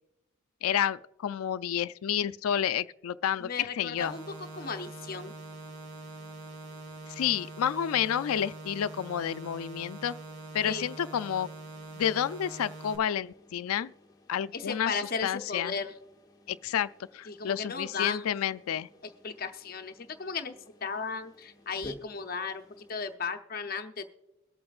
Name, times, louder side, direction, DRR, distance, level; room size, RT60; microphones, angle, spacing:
voice 1, 0.6-4.1 7.1-10.1 10.5-11.5 11.9-13.9 14.3-15.7 16.5-18.9, left 9 dB, 90° left, 0.4 m, -30 dB
sound 1, 3.2-23.2, left 1 dB, 20° left, 1.0 m, -54 dB
voice 2, 3.4-5.3 10.6-10.9 14.5-15.9 17.3-18.2 19.0-20.5 20.8-24.0, left 5 dB, 45° left, 0.6 m, -35 dB
sound 2, 4.0-13.0, right 2 dB, 75° right, 2.1 m, -44 dB
22.5 x 8.6 x 2.4 m
head